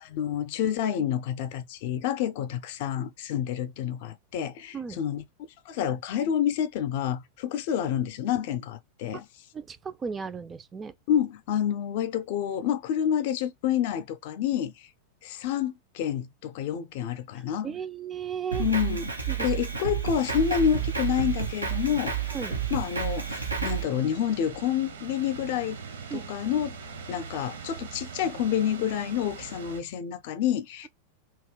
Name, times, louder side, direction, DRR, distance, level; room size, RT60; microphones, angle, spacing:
voice 1, 0.0-5.2 5.7-9.2 11.1-14.9 15.2-17.7 18.6-19.1 19.4-22.3 22.7-25.8 26.1-26.8 27.1-30.9, left 9 dB, 50° left, 0.5 m, -28 dB
voice 2, 9.5-10.9 17.3-18.7 19.3-19.5 22.3-22.5 26.1-26.3, right 6 dB, 20° right, 0.3 m, -35 dB
Drum kit, 18.5-23.8, right 7 dB, 80° right, 1.1 m, -30 dB
sound 1, 20.1-29.8, right 6 dB, 65° right, 0.7 m, -42 dB
2.9 x 2.7 x 3.5 m
figure-of-eight pair, 90°, 0 cm